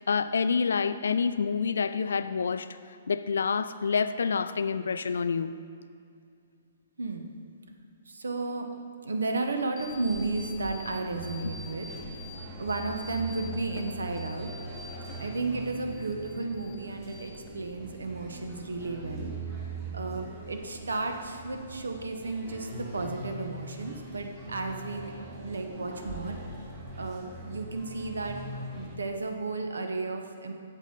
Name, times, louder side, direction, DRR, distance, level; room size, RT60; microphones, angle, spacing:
voice 1, 0.0-2.7 3.1-5.5, left 5 dB, 75° left, 12 dB, 0.3 m, -27 dB
voice 2, 7.0-7.3 8.1-8.7 9.0-11.9 12.6-14.5 15.2-19.3 19.9-25.1 25.4-26.4 27.0-28.4 28.7-30.5, right 3 dB, 80° right, 4 dB, 0.9 m, -33 dB
sound 1, 9.8-10.9 11.2-12.4 12.7-15.3 15.6-16.8 17.1-17.7, left 3 dB, 30° left, 0.7 m, -47 dB
sound 2, 9.8-28.9, right 2 dB, 30° right, 1.8 m, -42 dB
8.2 x 7.5 x 3.9 m, 2.3 s
figure-of-eight pair, 125°, 0 cm